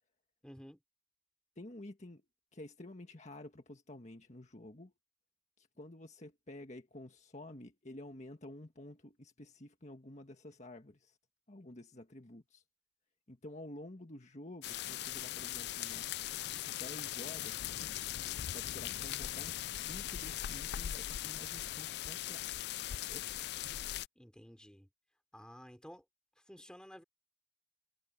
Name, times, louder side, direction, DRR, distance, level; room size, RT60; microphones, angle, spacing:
voice 1, 0.4-0.8 24.1-24.9 25.3-26.0 26.5-27.0, equal, 5° left, 3.4 m, -53 dB
voice 2, 1.6-2.2 2.5-4.9 5.6-11.2 11.5-12.6 13.3-16.2 16.7-17.7 18.3-22.7 23.0-23.3, left 1 dB, 40° left, 1.6 m, -51 dB
sound 1, 14.6-24.1, left 13 dB, 60° left, 0.3 m, -40 dB
head